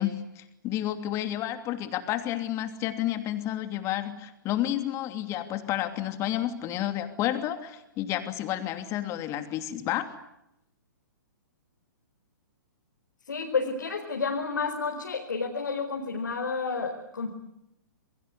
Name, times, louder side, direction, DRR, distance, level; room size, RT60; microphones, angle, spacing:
voice 1, 0.0-10.1, left 12 dB, 25° left, 8 dB, 2.9 m, -30 dB
voice 2, 13.3-17.3, left 4 dB, 70° left, 2 dB, 4.7 m, -30 dB
28.0 x 23.0 x 8.3 m, 0.83 s
figure-of-eight pair, 120°, 11 cm